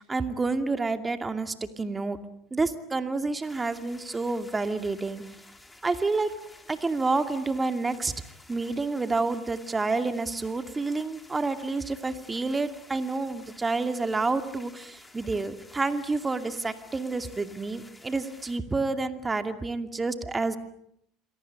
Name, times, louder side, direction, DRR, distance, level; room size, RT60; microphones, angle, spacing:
voice 1, 0.0-2.2 2.5-5.2 5.8-6.3 6.7-8.1 8.5-20.6, right 3 dB, 20° right, 8 dB, 2.4 m, -29 dB
sound 1, 3.4-18.6, left 2 dB, 10° left, 4.1 m, -52 dB
28.0 x 22.5 x 8.8 m, 0.73 s
hypercardioid pair, 80°, 0 cm